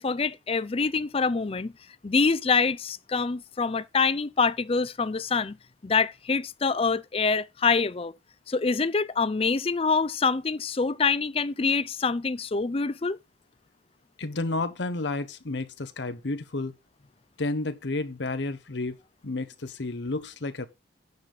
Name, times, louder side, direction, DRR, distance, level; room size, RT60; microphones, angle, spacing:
voice 1, 0.0-1.7 2.0-5.6 5.8-8.1 8.5-13.2, left 4 dB, 30° left, 0.5 m, -25 dB
voice 2, 14.2-16.7 17.4-19.0 19.2-20.7, left 2 dB, 70° left, 0.9 m, -31 dB
9.7 x 4.1 x 6.5 m
head